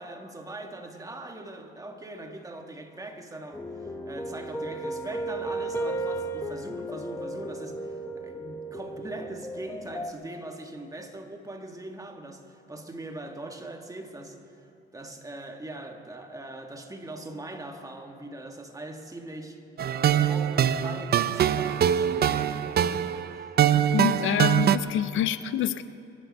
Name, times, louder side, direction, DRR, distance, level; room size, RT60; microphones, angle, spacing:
voice 1, 0.0-14.7 14.9-19.6 20.2-23.0 23.3-23.6, right 2 dB, 15° right, 4 dB, 1.6 m, -41 dB
sound 1, 3.5-10.1, right 1 dB, 10° left, 1.2 m, -34 dB
sound 2, 19.8-24.8, right 9 dB, 50° right, 0.5 m, -23 dB
voice 2, 23.9-25.8, left 11 dB, 75° left, 14 dB, 0.5 m, -27 dB
24.0 x 10.5 x 5.3 m, 2.7 s
cardioid pair, 90°, 20 cm